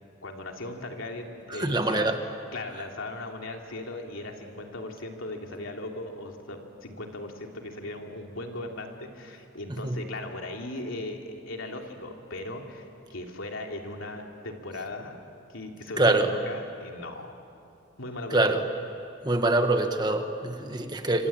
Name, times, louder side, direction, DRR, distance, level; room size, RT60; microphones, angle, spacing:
voice 1, 0.2-2.1 2.5-15.1 15.5-17.3 18.0-18.6, left 2 dB, 90° left, 2 dB, 3.0 m, -38 dB
voice 2, 1.5-2.2 9.8-10.0 16.0-16.3 18.3-18.6 19.2-21.3, right 2 dB, 20° right, 6 dB, 1.4 m, -24 dB
26.0 x 26.0 x 8.8 m, 2.6 s
head